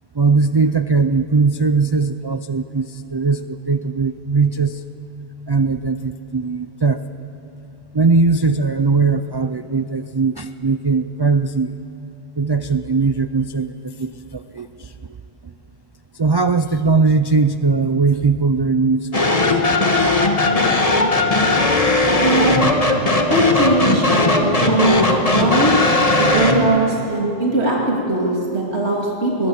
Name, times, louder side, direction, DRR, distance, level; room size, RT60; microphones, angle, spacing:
voice 1, 0.1-4.8 5.5-7.0 7.9-11.8 12.4-14.9 15.4-15.5 16.1-19.6, right 4 dB, 40° right, 10 dB, 0.4 m, -19 dB
sound 1, 19.1-26.7, left 2 dB, 35° left, 1.7 m, -17 dB
voice 2, 22.2-22.7 23.3-25.8 26.2-29.5, right 2 dB, 90° right, -3 dB, 3.0 m, -20 dB
21.0 x 20.5 x 7.2 m, 2.9 s
omnidirectional pair, 1.1 m